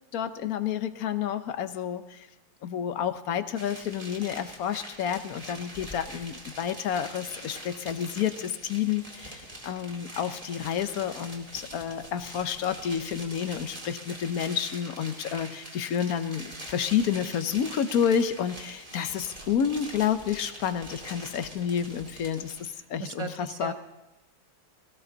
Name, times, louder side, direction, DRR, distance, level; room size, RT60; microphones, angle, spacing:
voice 1, 0.1-2.3 2.6-23.7, left 8 dB, 60° left, 11 dB, 1.0 m, -30 dB
sound 1, 3.5-22.7, right 1 dB, 15° right, 2.5 m, -44 dB
voice 2, 22.7-23.7, right 5 dB, 50° right, 7 dB, 0.3 m, -38 dB
18.5 x 16.0 x 3.9 m, 1.1 s
omnidirectional pair, 2.2 m